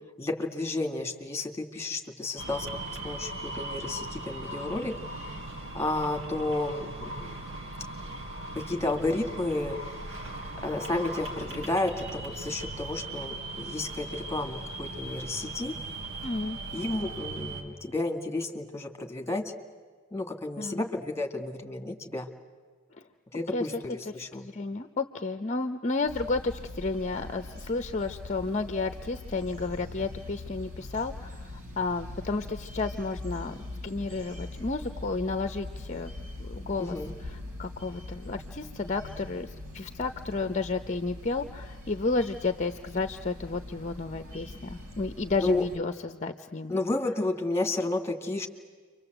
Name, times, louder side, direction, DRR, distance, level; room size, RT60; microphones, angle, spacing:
voice 1, 0.2-2.7 3.0-4.9 5.7-7.4 8.6-9.8 10.6-15.7 16.7-19.5 20.1-22.3 23.3-24.4 36.8-37.1 45.4-45.6 46.7-48.5, left 2 dB, 10° left, 5 dB, 2.1 m, -32 dB
sound 1, 2.4-17.6, right 2 dB, 60° right, 4.0 m, -38 dB
voice 2, 16.2-16.6 20.6-20.8 23.5-36.1 36.4-46.8, left 3 dB, 35° left, 8 dB, 0.8 m, -32 dB
sound 2, 26.0-45.8, left 2 dB, 85° right, 3.7 m, -42 dB
30.0 x 24.5 x 8.0 m, 1.6 s
head